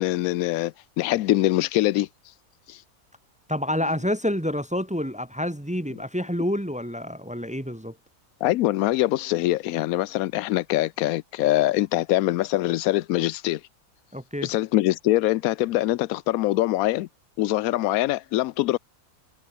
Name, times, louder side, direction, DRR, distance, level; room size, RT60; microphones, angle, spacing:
voice 1, 0.0-2.1 2.7-2.8 8.4-13.6 14.4-17.1 17.4-18.8, left 16 dB, 75° left, 1.0 m, -23 dB
voice 2, 3.5-7.9 14.1-14.5, equal, 5° right, 0.8 m, -28 dB
omnidirectional pair, 1.6 m